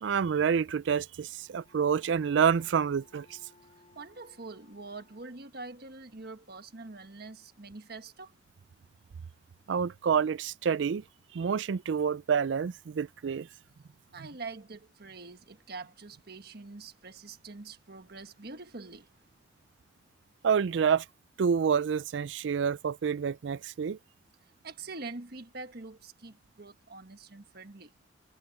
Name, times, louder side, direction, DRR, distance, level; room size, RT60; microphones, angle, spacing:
voice 1, 0.0-3.4 9.7-11.0 11.3-13.5 14.2-14.3 20.4-21.1 21.4-24.0, right 7 dB, 75° right, 0.4 m, -28 dB
Bowed string instrument, 1.3-5.8, left 2 dB, 35° left, 4.2 m, -62 dB
voice 2, 3.9-8.3 14.1-19.1 24.6-27.9, right 3 dB, 55° right, 1.5 m, -44 dB
head